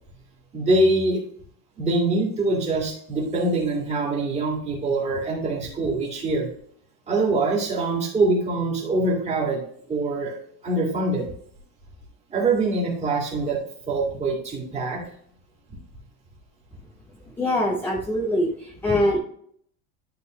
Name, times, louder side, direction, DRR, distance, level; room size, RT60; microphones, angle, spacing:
voice 1, 0.5-1.2 1.8-6.5 7.1-9.6 9.9-10.4 10.6-11.2 12.3-13.6 13.9-15.0, right 2 dB, 15° right, -3 dB, 2.0 m, -24 dB
voice 2, 17.3-19.2, left 1 dB, 5° left, -1 dB, 0.4 m, -23 dB
11.0 x 3.8 x 3.0 m, 0.64 s
cardioid pair, 165°, 40 cm